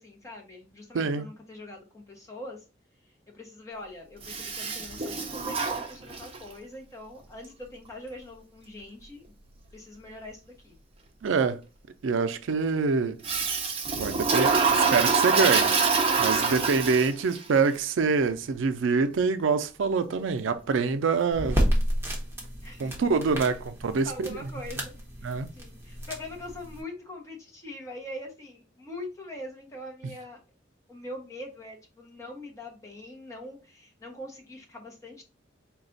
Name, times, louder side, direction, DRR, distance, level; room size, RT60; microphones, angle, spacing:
voice 1, 0.0-2.6 3.3-9.3 9.7-10.8 22.6-22.9 24.0-25.0 25.2-30.4 30.9-35.2, left 1 dB, 15° left, 0.9 m, -42 dB
voice 2, 0.9-1.3 11.2-11.6 12.0-13.2 14.0-15.7 16.2-21.6 22.8-24.4 25.2-25.5, right 4 dB, 90° right, 0.4 m, -25 dB
Toilet flush, 4.2-6.5 13.2-17.4, right 5 dB, 30° right, 0.5 m, -25 dB
sound 1, 21.3-26.8, equal, 15° right, 0.9 m, -31 dB
4.1 x 2.3 x 3.8 m
head